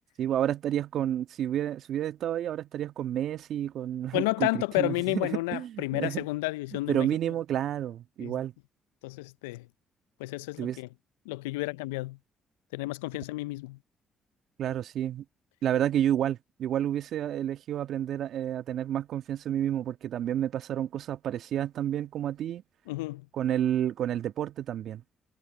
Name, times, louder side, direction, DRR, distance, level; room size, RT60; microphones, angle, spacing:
voice 1, 0.2-6.3 6.9-8.5 10.6-10.8 14.6-15.2 15.6-22.6 23.3-25.0, right 11 dB, 65° right, 1.8 m, -30 dB
voice 2, 4.1-7.1 8.2-8.4 9.0-9.7 10.2-10.9 11.3-12.2 12.7-13.8 22.9-23.2, left 22 dB, 85° left, 0.5 m, -31 dB
hypercardioid pair, 50°, 0 cm